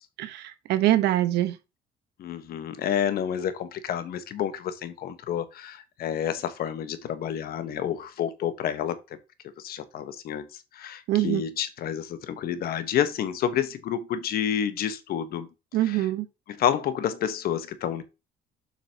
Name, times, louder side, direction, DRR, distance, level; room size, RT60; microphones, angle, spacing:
voice 1, 0.2-1.5 11.1-11.4 15.7-16.3, right 14 dB, 85° right, 1.1 m, -24 dB
voice 2, 2.2-9.0 9.6-15.5 15.8-16.1 16.5-18.0, left 9 dB, 65° left, 1.3 m, -29 dB
7.6 x 6.0 x 2.9 m
cardioid pair, 110°, 17 cm